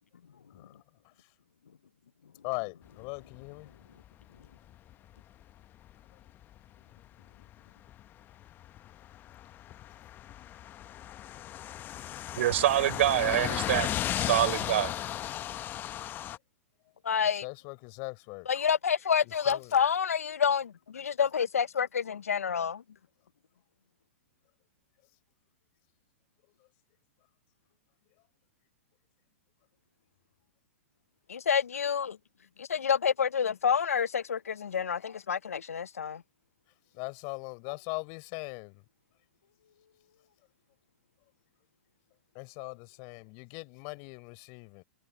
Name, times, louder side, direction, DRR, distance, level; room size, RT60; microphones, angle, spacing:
voice 1, 0.5-1.3 2.4-3.7 9.9-10.0 17.3-18.5 19.5-19.7 36.9-38.8 42.3-44.8, left 34 dB, 40° left, 4.1 m, -40 dB
sound 1, 3.2-4.9 5.2-5.5 5.8-5.9 6.3-6.6 6.9-8.0 8.3-16.4, left 12 dB, 25° left, 0.9 m, -35 dB
voice 2, 12.4-14.9, right 14 dB, 60° right, 4.1 m, -26 dB
voice 3, 17.0-17.4 18.5-22.8 31.3-32.2 32.6-36.2, left 7 dB, 85° left, 0.6 m, -28 dB
hypercardioid pair, 125°, 8 cm